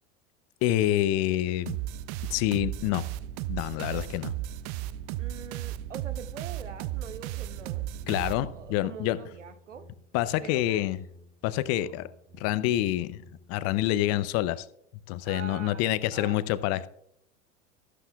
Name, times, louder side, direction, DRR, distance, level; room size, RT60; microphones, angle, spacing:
voice 1, 0.6-1.8 2.3-3.0 3.5-4.3 8.1-9.2 10.1-11.0 11.4-12.1 12.4-13.2 13.5-14.7 15.1-16.9, left 14 dB, 45° left, 15 dB, 0.6 m, -27 dB
sound 1, 1.7-8.8, right 13 dB, 50° right, 0.5 m, -35 dB
voice 2, 5.2-7.9 8.5-9.9 10.4-10.9 15.2-16.4, right 6 dB, 85° right, 12 dB, 0.9 m, -43 dB
sound 2, 7.5-14.2, equal, 10° right, 2.0 m, -53 dB
13.5 x 11.0 x 2.3 m, 0.73 s
hypercardioid pair, 85°, 36 cm